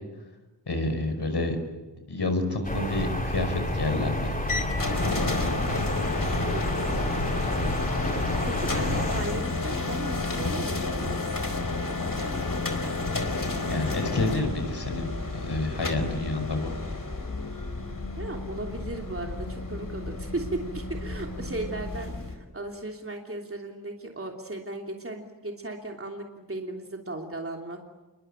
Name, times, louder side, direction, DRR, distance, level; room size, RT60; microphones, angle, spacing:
voice 1, 0.7-1.6 2.1-4.3 13.7-15.1 15.4-16.7, left 2 dB, 70° left, 6 dB, 5.5 m, -28 dB
sound 1, 2.6-9.2, left 1 dB, 20° left, 7.3 m, -29 dB
sound 2, 4.5-22.3, left 3 dB, 50° left, 4.5 m, -31 dB
voice 2, 6.4-7.2 8.5-11.3 18.2-27.8, right 2 dB, 30° right, 2 dB, 3.1 m, -36 dB
28.0 x 23.0 x 9.0 m, 1.2 s
wide cardioid pair, 75°, 42 cm